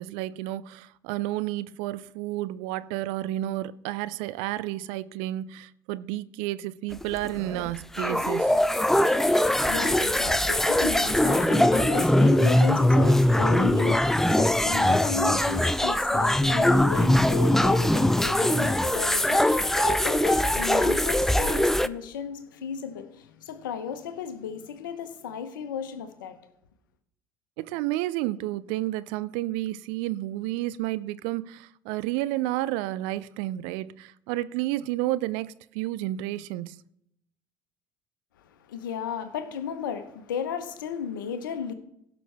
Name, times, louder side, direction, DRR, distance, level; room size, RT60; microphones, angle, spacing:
voice 1, 0.0-8.6 27.6-36.8, right 16 dB, 65° right, 0.4 m, -31 dB
sound 1, 6.9-21.9, left 1 dB, 5° left, 0.5 m, -22 dB
voice 2, 9.0-26.4 38.7-41.7, left 7 dB, 80° left, 1.1 m, -34 dB
16.5 x 6.1 x 3.5 m
hypercardioid pair, 65°, 11 cm